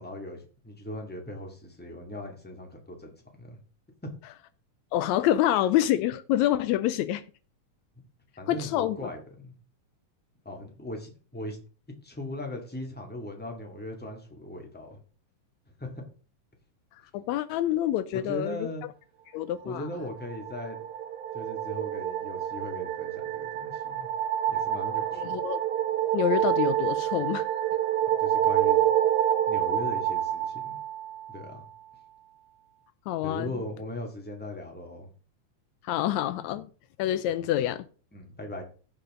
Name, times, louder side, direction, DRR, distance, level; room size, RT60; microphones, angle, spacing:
voice 1, 0.0-3.1 3.4-3.6 4.0-4.1 8.4-9.5 10.4-11.6 12.0-15.0 15.8-16.0 18.1-18.8 19.6-20.8 21.3-24.1 24.5-25.3 28.2-28.9 29.5-30.8 31.3-31.6 33.2-35.1 37.4-37.5 38.1-38.6, left 1 dB, 5° left, 1.4 m, -39 dB
voice 2, 4.9-7.2 8.5-9.1 17.1-18.7 19.3-19.9 25.2-25.6 26.1-27.5 33.1-33.5 35.8-36.7 37.0-37.9, left 12 dB, 90° left, 1.6 m, -27 dB
sound 1, 20.1-31.5, right 11 dB, 85° right, 1.3 m, -28 dB
16.0 x 5.6 x 3.7 m
omnidirectional pair, 3.9 m